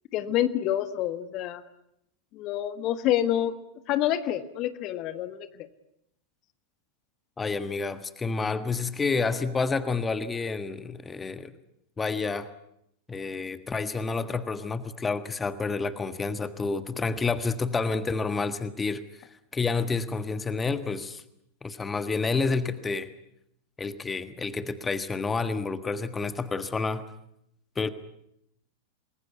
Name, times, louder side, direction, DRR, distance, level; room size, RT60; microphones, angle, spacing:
voice 1, 0.1-1.6 2.3-3.6 3.9-5.7, left 12 dB, 40° left, 12 dB, 1.5 m, -27 dB
voice 2, 7.4-11.5 12.0-12.5 13.1-19.0 19.5-21.2 21.6-23.1 23.8-27.0 27.7-27.9, left 4 dB, 15° left, 12 dB, 1.5 m, -29 dB
27.5 x 21.5 x 9.4 m, 0.79 s
figure-of-eight pair, 90°, 0 cm